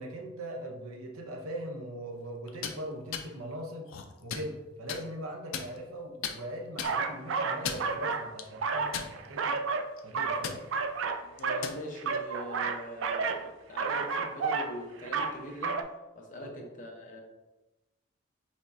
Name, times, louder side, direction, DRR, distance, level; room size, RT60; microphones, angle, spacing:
voice 1, 0.0-3.9 4.2-9.6 10.0-10.7 16.4-16.5, right 1 dB, 90° right, 1 dB, 0.7 m, -40 dB
sound 1, 2.5-2.8 3.1-3.3 3.9-4.5 4.9-5.0 5.5-6.0 6.2-6.4 6.8-6.9 7.5-7.9 8.4-8.5 8.9-9.5 9.8-10.0 10.4-10.6 11.4-11.8, left 7 dB, 70° left, 0.5 m, -36 dB
sound 2, 6.8-8.3 8.5-9.9 10.1-11.7 12.0-13.4 13.8-14.7 15.0-15.4 15.6-15.8, right 5 dB, 65° right, 0.3 m, -31 dB
voice 2, 11.2-15.9 16.2-17.2, equal, 35° left, 0 dB, 0.8 m, -42 dB
5.1 x 3.5 x 2.6 m, 1.1 s
head